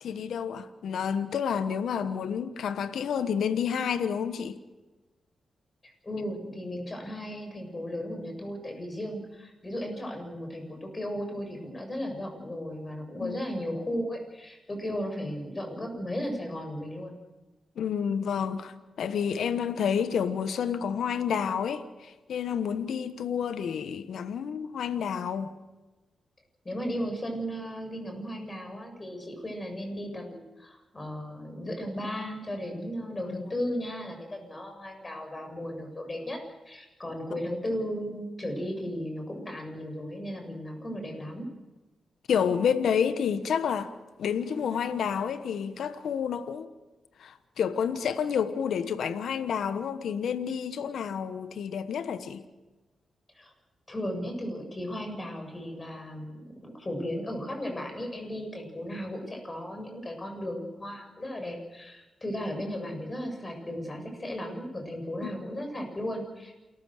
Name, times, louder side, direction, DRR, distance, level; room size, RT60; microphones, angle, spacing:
voice 1, 0.0-4.6 13.2-13.4 17.8-25.5 33.3-33.4 42.3-43.9 44.2-46.7 47.2-52.4, left 7 dB, 80° left, 1.2 m, -29 dB
voice 2, 6.0-17.2 26.6-36.4 36.6-41.5 53.3-53.5 53.9-66.6, equal, 30° left, 7.5 m, -35 dB
28.5 x 14.5 x 6.6 m
cardioid pair, 55°, 0 cm